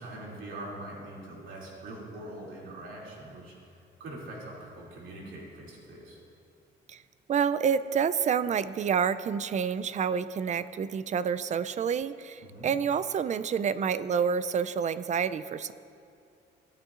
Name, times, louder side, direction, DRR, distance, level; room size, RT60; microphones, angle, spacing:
voice 1, 0.0-3.7 4.0-6.2 12.4-12.7, right 1 dB, 80° right, -4 dB, 2.6 m, -43 dB
voice 2, 7.3-15.7, right 7 dB, 35° right, 14 dB, 0.4 m, -28 dB
17.0 x 9.0 x 2.5 m, 2.5 s
cardioid pair, 90°, 20 cm